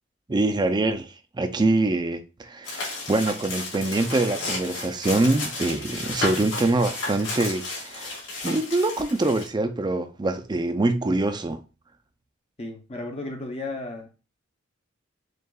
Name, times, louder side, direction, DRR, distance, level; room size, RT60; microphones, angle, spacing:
voice 1, 0.3-1.1 1.4-8.1 8.4-11.6, right 2 dB, 20° right, 0.4 m, -24 dB
sound 1, 2.6-9.5, left 2 dB, 70° left, 1.9 m, -33 dB
voice 2, 12.6-14.1, left 2 dB, 30° left, 0.6 m, -34 dB
6.3 x 2.4 x 2.3 m
head